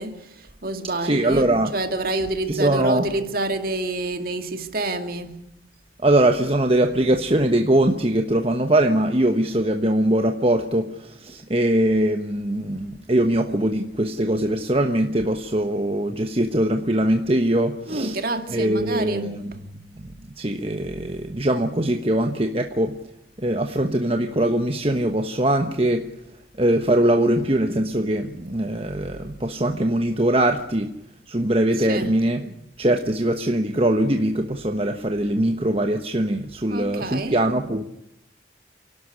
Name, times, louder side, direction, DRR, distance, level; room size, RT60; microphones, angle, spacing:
voice 1, 0.0-5.4 17.9-19.4 31.8-32.2 36.7-37.4, right 2 dB, 50° right, 2.2 m, -28 dB
voice 2, 1.0-1.7 2.5-3.1 6.0-18.2 18.5-19.5 20.0-20.1 20.4-23.0 23.4-26.1 26.6-30.9 31.3-32.5 32.8-37.8, right 1 dB, 30° right, 1.2 m, -22 dB
28.5 x 12.0 x 9.8 m
head